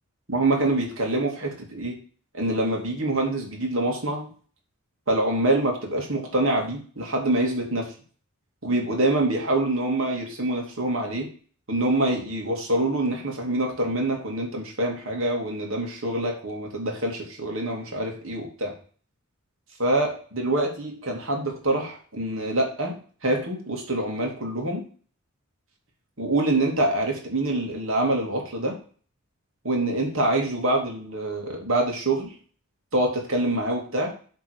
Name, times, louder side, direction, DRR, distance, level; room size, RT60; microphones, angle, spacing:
voice 1, 0.3-2.0 2.3-4.3 5.1-7.9 8.6-11.3 11.7-18.7 19.8-23.0 23.2-24.8 26.2-28.8 29.6-32.3 32.9-34.1, right 1 dB, 65° right, 1 dB, 2.5 m, -25 dB
8.0 x 3.8 x 6.4 m, 0.42 s
head